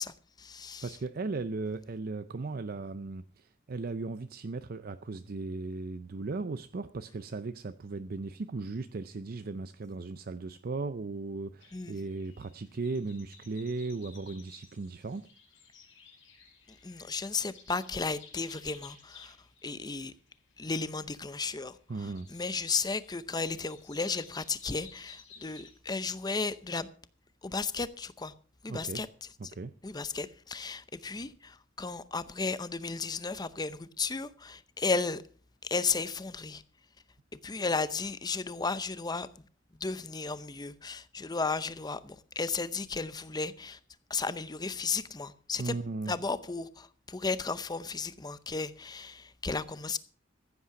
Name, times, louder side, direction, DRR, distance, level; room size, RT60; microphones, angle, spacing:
voice 1, 0.0-0.8 11.7-12.0 16.8-19.4 19.6-20.1 20.6-21.8 22.3-26.9 27.4-28.3 28.6-29.1 29.8-35.2 35.6-36.6 37.4-39.3 39.8-43.8 44.1-45.8 46.1-50.0, left 4 dB, 20° left, 0.6 m, -34 dB
voice 2, 0.8-15.3 21.9-22.3 28.7-29.0 29.4-29.7 45.6-46.2, right 3 dB, 50° right, 0.5 m, -37 dB
sound 1, 11.6-25.7, left 5 dB, 85° left, 5.5 m, -56 dB
15.0 x 8.4 x 5.8 m
head